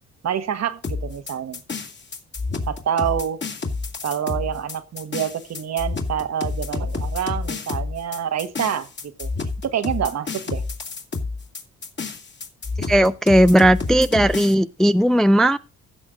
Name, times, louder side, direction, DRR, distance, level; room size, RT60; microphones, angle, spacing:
voice 1, 0.2-1.6 2.7-3.4 4.0-8.9 9.2-9.3 9.6-10.6, right 9 dB, 60° right, 1.4 m, -27 dB
sound 1, 0.8-14.5, left 3 dB, 35° left, 2.3 m, -29 dB
voice 2, 12.9-15.6, equal, ahead, 0.4 m, -16 dB
15.5 x 6.3 x 3.9 m
cardioid pair, 90°, 30 cm